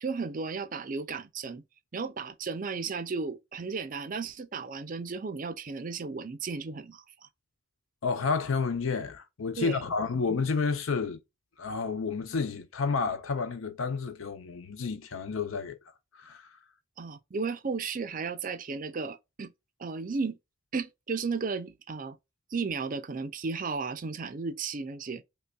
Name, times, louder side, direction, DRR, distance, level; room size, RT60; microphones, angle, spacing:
voice 1, 0.0-1.6 1.9-7.0 9.6-9.8 17.0-19.5 19.8-20.4 20.7-22.2 22.5-25.2, right 4 dB, 40° right, 0.5 m, -34 dB
voice 2, 8.0-11.2 11.6-15.8 16.1-16.6, left 4 dB, 75° left, 0.6 m, -30 dB
5.2 x 2.2 x 2.3 m
head